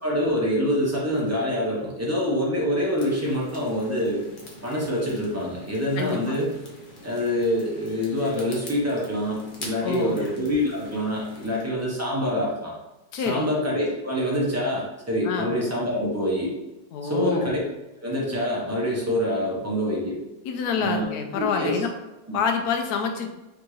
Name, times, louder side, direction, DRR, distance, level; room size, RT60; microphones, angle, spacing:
voice 1, 0.0-4.3 4.6-6.5 7.0-12.7 13.2-16.5 17.0-17.6 18.0-20.2 20.8-21.1 21.4-21.8 22.3-22.4, equal, 25° right, -5 dB, 0.3 m, -26 dB
sound 1, 3.0-11.6, left 2 dB, 50° left, 0.6 m, -44 dB
voice 2, 9.8-10.2 13.1-13.5 15.2-15.5 16.9-17.5 20.4-21.9 22.3-23.3, left 5 dB, 70° left, 3 dB, 1.0 m, -27 dB
4.0 x 3.5 x 3.1 m, 1.0 s
omnidirectional pair, 2.0 m